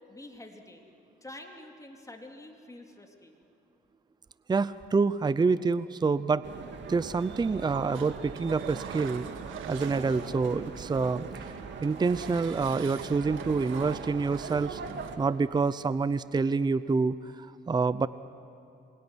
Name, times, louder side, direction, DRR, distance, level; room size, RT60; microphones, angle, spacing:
voice 1, 0.1-0.8 1.2-3.4, left 1 dB, 15° left, 2 dB, 3.3 m, -47 dB
voice 2, 4.5-6.5 6.9-9.3 9.7-11.3 11.8-14.8 15.2-18.1, right 4 dB, 20° right, 15 dB, 0.6 m, -27 dB
sound 1, 6.4-15.2, right 5 dB, 65° right, 2.6 m, -40 dB
Engine, 7.9-10.5 10.7-15.1, right 9 dB, 90° right, 1.5 m, -47 dB
26.5 x 22.0 x 9.8 m, 2.7 s
cardioid pair, 90°, 20 cm